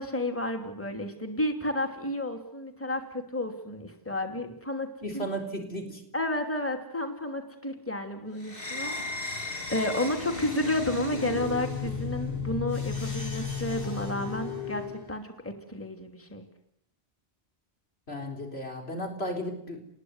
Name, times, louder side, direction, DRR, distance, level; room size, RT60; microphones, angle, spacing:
voice 1, 0.0-5.2 6.1-16.5, left 1 dB, 10° left, 5 dB, 2.9 m, -32 dB
voice 2, 5.0-6.0 18.1-19.8, equal, 75° left, 2 dB, 4.4 m, -34 dB
sound 1, 8.4-15.1, left 4 dB, 55° left, 4.0 m, -34 dB
29.5 x 21.0 x 9.6 m, 0.75 s
omnidirectional pair, 1.1 m